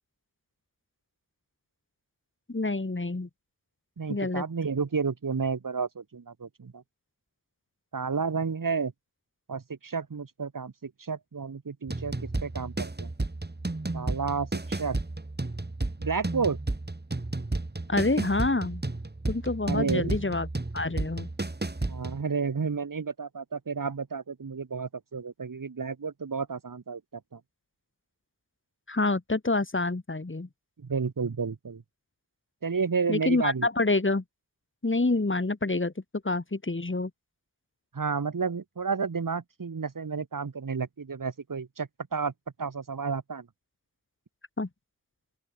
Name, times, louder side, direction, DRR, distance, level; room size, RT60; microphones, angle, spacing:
voice 1, 2.5-3.3 4.1-4.4 17.9-18.8 19.3-20.5 20.7-21.3 28.9-30.5 33.1-34.2 34.8-35.9 36.2-37.1 44.6-44.7, left 2 dB, 40° left, 4.9 m, -27 dB
voice 2, 4.0-6.8 7.9-8.9 9.5-13.1 13.9-15.0 16.0-16.6 19.7-20.2 21.9-27.4 30.8-31.8 32.6-33.7 37.9-42.3 42.6-43.5, right 5 dB, 85° right, 5.2 m, -31 dB
sound 1, 11.9-22.2, right 2 dB, 30° right, 3.6 m, -32 dB
open air
cardioid pair, 45°, 32 cm